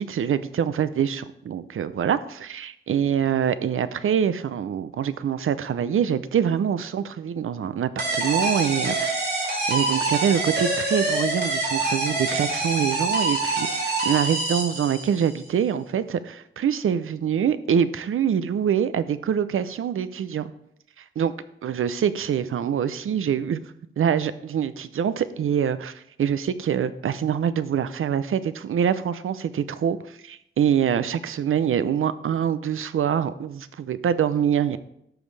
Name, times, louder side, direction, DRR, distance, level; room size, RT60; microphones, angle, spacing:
voice 1, 0.0-9.1 9.7-20.5 21.2-21.3 21.6-23.6 24.0-34.8, right 8 dB, 85° right, 14 dB, 0.6 m, -25 dB
sound 1, 8.0-15.3, right 2 dB, 55° right, 2.7 m, -25 dB
12.0 x 7.2 x 3.3 m, 0.75 s
wide cardioid pair, 145°, 21 cm